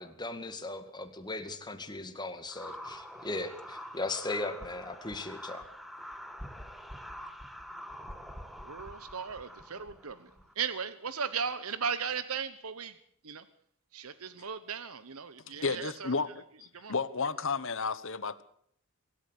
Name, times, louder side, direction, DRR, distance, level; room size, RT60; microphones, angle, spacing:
voice 1, 0.0-5.6, left 2 dB, 20° left, 2.1 m, -38 dB
sound 1, 2.5-10.5, equal, ahead, 1.7 m, -45 dB
voice 2, 8.6-10.2 10.6-12.9 13.2-13.4 13.9-16.1 16.7-16.9, right 6 dB, 80° right, 1.1 m, -36 dB
voice 3, 15.5-16.4 16.9-18.4, left 4 dB, 60° left, 1.3 m, -32 dB
24.0 x 13.0 x 8.3 m
head